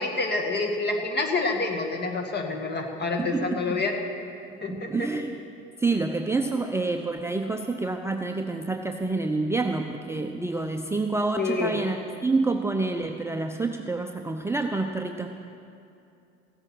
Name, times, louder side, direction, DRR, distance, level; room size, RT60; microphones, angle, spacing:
voice 1, 0.0-4.0 4.6-5.1 11.4-11.7, left 3 dB, 35° left, 3 dB, 1.9 m, -27 dB
voice 2, 3.2-3.8 4.7-5.4 5.8-15.3, right 3 dB, 10° right, 3 dB, 0.6 m, -28 dB
15.5 x 8.8 x 6.1 m, 2.6 s
hypercardioid pair, 75°, 31 cm